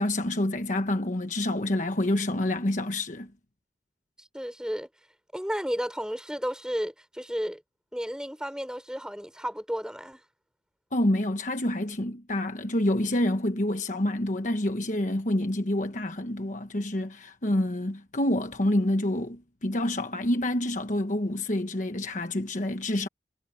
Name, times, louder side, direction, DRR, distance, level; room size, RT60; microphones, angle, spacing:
voice 1, 0.0-3.3 10.9-23.1, left 1 dB, 45° left, 1.2 m, -27 dB
voice 2, 4.2-4.9 5.3-7.6 7.9-10.2, equal, 5° right, 5.2 m, -33 dB
head